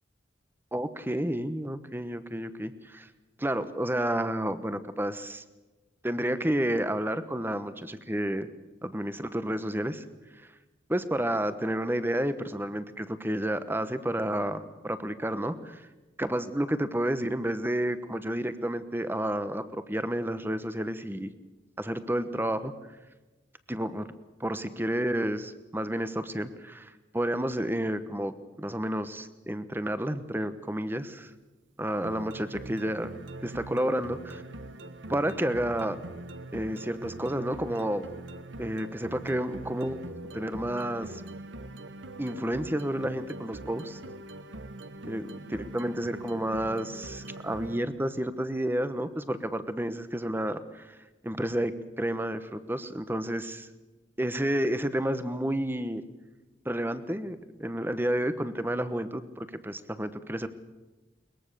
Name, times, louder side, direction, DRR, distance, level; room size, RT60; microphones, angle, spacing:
voice 1, 0.7-3.1 3.4-5.4 6.0-8.5 8.8-10.0 10.9-15.8 16.2-21.3 21.8-22.7 23.7-24.1 24.4-28.3 28.6-31.3 31.8-33.1 33.4-34.4 35.1-36.0 36.5-38.1 38.6-41.2 42.2-44.0 45.0-50.9 51.2-51.7 52.0-53.7 54.2-56.0 56.6-60.5, right 1 dB, 10° right, 12 dB, 1.1 m, -30 dB
sound 1, 32.0-47.9, right 2 dB, 85° right, 1.2 m, -42 dB
22.0 x 20.5 x 6.8 m, 1.1 s
head